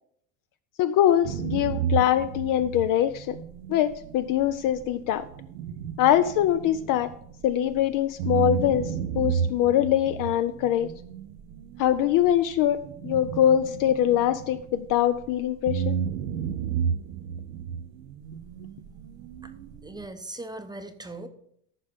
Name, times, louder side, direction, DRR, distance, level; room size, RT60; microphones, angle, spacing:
voice 1, 0.8-3.4 3.7-5.3 6.0-7.1 7.4-10.9 11.8-16.0, left 11 dB, 45° left, 12 dB, 0.4 m, -23 dB
sound 1, 1.2-7.8 8.2-15.3 15.7-20.1, right 7 dB, 90° right, 0.8 m, -33 dB
voice 2, 19.8-21.3, right 2 dB, 10° right, 8 dB, 0.6 m, -39 dB
14.0 x 5.4 x 3.6 m, 0.69 s
supercardioid pair, 110°, 48 cm